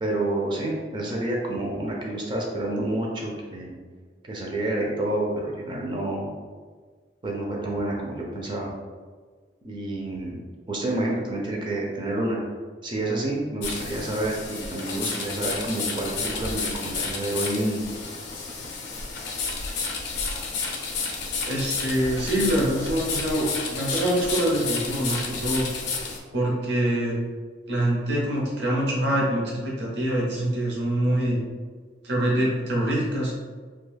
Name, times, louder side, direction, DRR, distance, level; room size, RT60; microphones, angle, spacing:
voice 1, 0.0-3.8 4.3-6.3 7.2-8.7 9.6-12.4 12.8-17.8, right 1 dB, 25° right, -2 dB, 0.4 m, -29 dB
sound 1, 13.6-26.2, left 4 dB, 65° left, 0.4 m, -31 dB
voice 2, 21.4-25.7 26.3-27.2 27.7-31.4 32.0-33.3, right 1 dB, 70° right, -3 dB, 0.8 m, -25 dB
2.3 x 2.3 x 3.2 m, 1.5 s
head